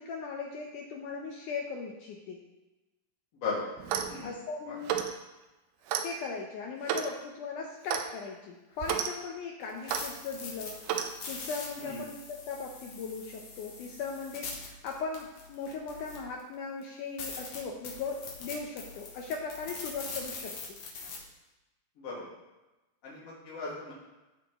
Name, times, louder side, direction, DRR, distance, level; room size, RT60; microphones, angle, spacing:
voice 1, 0.0-2.5 4.2-5.0 6.0-10.9 11.3-20.8, left 4 dB, 80° left, 1 dB, 1.8 m, -38 dB
voice 2, 3.3-3.6 4.1-4.3 4.7-4.8 11.8-12.0 22.0-22.2 23.0-23.9, left 4 dB, 40° left, -7 dB, 3.2 m, -37 dB
Clock, 3.8-4.2 4.9-5.2 5.9-6.1 6.9-7.1 7.9-8.1 8.8-9.1 9.9-10.1 10.9-11.1, right 9 dB, 90° right, 1.9 m, -31 dB
sound 1, 9.6-16.4 16.8-16.9 17.2-21.2, left 4 dB, 55° left, 1.9 m, -43 dB
15.0 x 5.0 x 3.6 m, 1.1 s
omnidirectional pair, 4.6 m